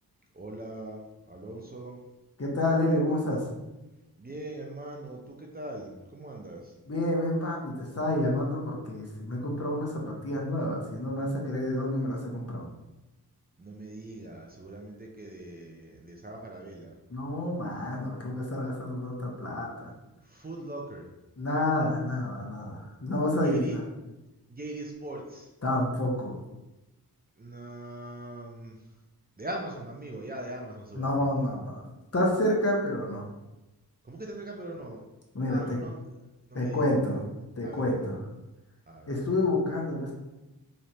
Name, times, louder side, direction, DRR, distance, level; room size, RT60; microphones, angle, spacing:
voice 1, 0.3-2.0 4.2-6.7 13.6-17.0 20.2-21.1 23.4-23.8 24.5-25.5 27.4-28.9 29.4-31.3 34.0-35.0 35.4-36.0 36.5-37.1 37.6-38.1 38.9-39.2, right 1 dB, 25° right, 0 dB, 0.5 m, -41 dB
voice 2, 2.4-3.5 6.9-12.6 17.1-19.9 21.4-23.8 25.6-26.3 30.9-31.8 32.1-33.2 35.3-35.8 36.5-37.2 37.6-38.2 39.1-40.1, left 1 dB, 40° left, -2 dB, 1.0 m, -29 dB
3.2 x 2.5 x 4.2 m, 1.0 s
cardioid pair, 60°, 38 cm